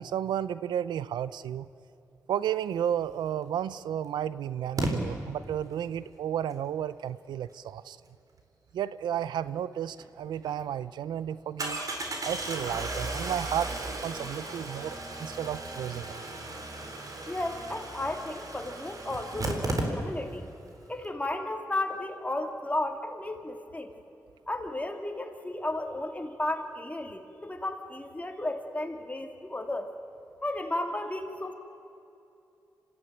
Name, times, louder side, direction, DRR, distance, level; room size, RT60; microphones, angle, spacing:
voice 1, 0.0-1.7 2.3-8.0 8.7-11.8 12.2-16.2, right 10 dB, 85° right, 16 dB, 0.5 m, -32 dB
Engine starting, 3.3-3.4 4.8-4.9 10.0-10.1 10.4-10.5 11.6-20.4 20.7-20.8 21.0-21.1, right 2 dB, 55° right, 4.0 m, -35 dB
voice 2, 17.3-20.5 20.9-23.9 24.5-29.9 30.4-31.5, left 1 dB, 20° left, 4 dB, 2.9 m, -34 dB
26.0 x 15.5 x 9.0 m, 2.8 s
supercardioid pair, 45°, 7 cm